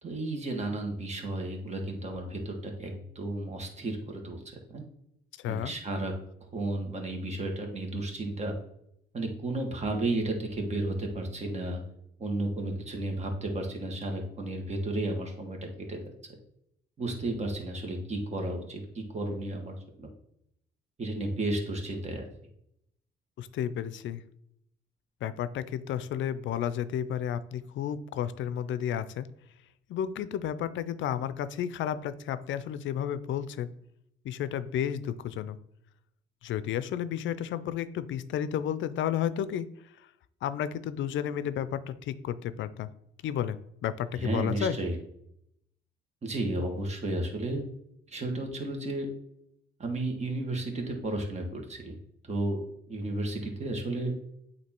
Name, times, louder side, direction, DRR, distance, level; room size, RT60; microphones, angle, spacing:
voice 1, 0.0-4.8 5.4-6.1 6.5-8.5 9.1-11.8 12.2-15.6 15.9-16.1 17.0-20.1 21.0-22.2 44.1-44.9 46.2-47.6 48.1-49.1 49.8-52.0 52.2-52.6 52.9-54.1, right 2 dB, 35° right, 2 dB, 1.6 m, -33 dB
voice 2, 23.4-24.2 25.2-29.3 29.9-33.7 34.2-35.6 36.4-39.7 40.4-42.9 43.2-43.6 43.8-44.8, left 9 dB, 75° left, 14 dB, 0.5 m, -32 dB
8.3 x 2.8 x 4.5 m, 0.76 s
cardioid pair, 90°, 20 cm